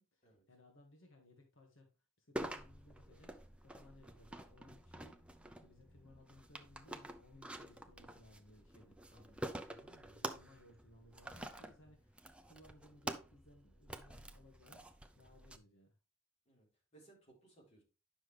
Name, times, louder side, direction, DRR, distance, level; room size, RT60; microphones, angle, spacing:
voice 1, 0.0-1.9 2.2-3.4 3.6-5.2 5.6-14.8 15.1-16.0, left 1 dB, 70° left, 2 dB, 1.7 m, -63 dB
sound 1, 2.4-15.6, right 1 dB, 5° right, 0.6 m, -48 dB
voice 2, 9.1-9.4 16.5-17.8, right 3 dB, 35° left, -2 dB, 4.1 m, -65 dB
9.8 x 6.2 x 3.3 m, 0.29 s
head